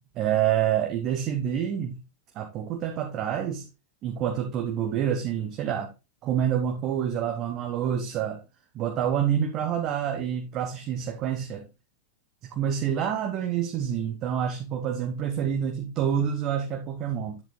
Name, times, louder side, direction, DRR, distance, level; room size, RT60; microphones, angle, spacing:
voice 1, 0.1-2.0 2.3-3.7 4.0-5.9 6.2-8.4 8.7-11.7 12.5-17.4, right 9 dB, 35° right, 1.1 m, -27 dB
9.8 x 7.8 x 2.2 m
figure-of-eight pair, 90°, 0 cm